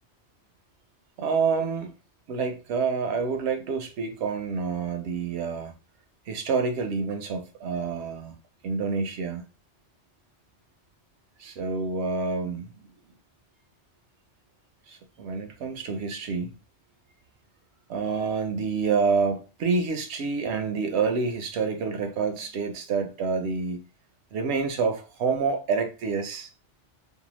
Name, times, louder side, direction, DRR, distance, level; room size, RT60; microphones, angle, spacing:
voice 1, 1.2-1.9 2.3-5.7 6.3-8.3 8.6-9.4 11.4-12.7 14.9-16.5 17.9-23.8 24.3-26.5, right 5 dB, 75° right, 0.8 m, -28 dB
2.7 x 2.1 x 3.0 m
omnidirectional pair, 1.2 m